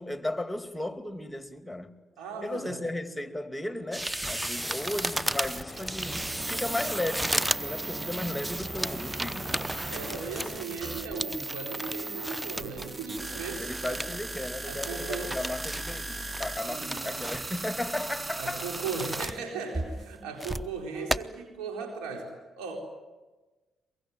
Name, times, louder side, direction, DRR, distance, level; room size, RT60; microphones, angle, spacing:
voice 1, 0.0-2.0 2.4-9.5 13.6-18.6 20.9-21.2, left 1 dB, 5° left, 2.6 m, -35 dB
voice 2, 2.2-2.9 9.8-14.0 14.6-15.4 16.7-17.4 18.4-22.8, right 4 dB, 80° right, 4.1 m, -37 dB
sound 1, 3.9-12.9 13.2-14.2 14.5-14.6 14.8-16.0 16.3-17.6 18.0-19.4 19.7-20.7 21.1-21.2, right 1 dB, 15° right, 0.9 m, -34 dB
sound 2, 4.5-10.7, left 3 dB, 30° left, 1.0 m, -44 dB
sound 3, 5.2-19.3, right 2 dB, 30° right, 1.2 m, -38 dB
23.0 x 23.0 x 9.4 m
hypercardioid pair, 45°, 0 cm